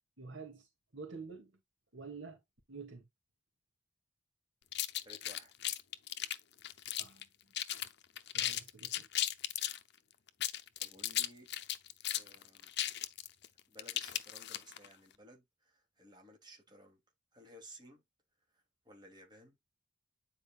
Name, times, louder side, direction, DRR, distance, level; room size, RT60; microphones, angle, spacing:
voice 1, 0.2-1.6 1.9-2.4 2.7-3.1 7.0-7.3 8.3-9.1, right 4 dB, 65° right, 2.7 m, -48 dB
sound 1, 4.7-7.2 7.5-7.9 8.2-9.8 10.3-14.9, left 12 dB, 55° left, 0.8 m, -36 dB
voice 2, 5.0-5.5 10.8-11.5 12.1-12.7 13.7-17.0 17.3-18.0 18.5-19.6, right 1 dB, 20° right, 3.2 m, -57 dB
9.5 x 4.9 x 2.5 m
head